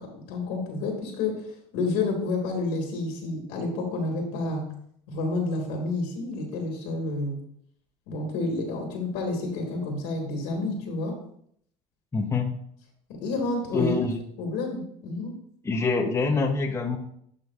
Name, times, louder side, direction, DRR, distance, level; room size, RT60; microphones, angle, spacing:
voice 1, 0.0-1.4 1.7-4.7 5.1-7.4 8.1-11.1 13.2-13.9 14.4-15.3, left 3 dB, 70° left, 1 dB, 1.8 m, -29 dB
voice 2, 12.1-12.5 13.7-14.2 15.6-17.0, left 4 dB, 15° left, 3 dB, 0.7 m, -25 dB
11.0 x 5.2 x 2.4 m, 0.67 s
supercardioid pair, 110°, 17 cm